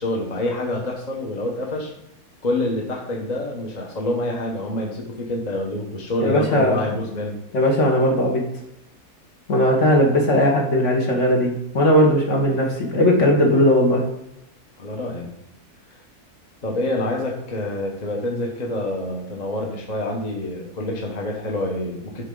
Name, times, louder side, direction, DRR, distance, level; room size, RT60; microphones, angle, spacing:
voice 1, 0.0-1.9 2.4-7.4 14.8-15.3 16.6-22.3, left 1 dB, 30° left, 0 dB, 1.0 m, -27 dB
voice 2, 6.2-6.9 7.5-8.4 9.5-14.0, equal, 55° left, 0 dB, 1.5 m, -18 dB
8.4 x 3.6 x 3.8 m, 0.85 s
omnidirectional pair, 1.7 m